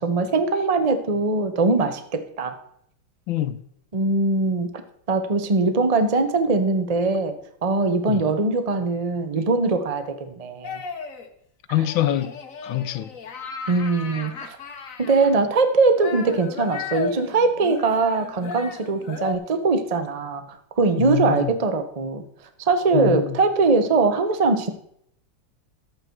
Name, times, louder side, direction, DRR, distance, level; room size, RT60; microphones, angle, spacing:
voice 1, 0.0-2.5 3.9-4.8 5.1-7.4 7.6-10.8 13.7-14.6 15.0-20.4 20.8-22.2 22.7-24.7, right 3 dB, 30° right, 0.7 m, -21 dB
voice 2, 3.3-3.6 8.1-8.2 11.7-12.3 12.6-13.1 21.0-21.5 22.9-23.4, left 12 dB, 75° left, 1.5 m, -25 dB
sound 1, 10.6-11.3 11.8-15.3 16.0-19.4, left 5 dB, 45° left, 1.4 m, -35 dB
12.5 x 8.8 x 4.6 m
omnidirectional pair, 2.2 m